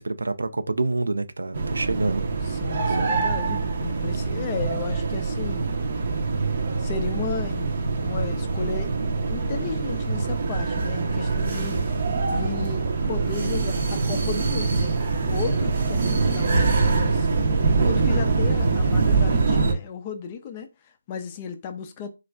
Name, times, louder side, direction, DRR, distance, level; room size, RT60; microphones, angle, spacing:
voice 1, 0.0-2.2 2.9-3.1 16.0-16.1, right 3 dB, 85° right, 0.4 m, -27 dB
sound 1, 1.5-19.7, right 4 dB, 45° right, 0.6 m, -24 dB
voice 2, 2.5-5.7 6.8-8.9 9.3-11.8 12.3-17.5 17.8-22.1, left 6 dB, 25° left, 0.4 m, -34 dB
4.0 x 2.4 x 2.2 m
hypercardioid pair, 165°, 0 cm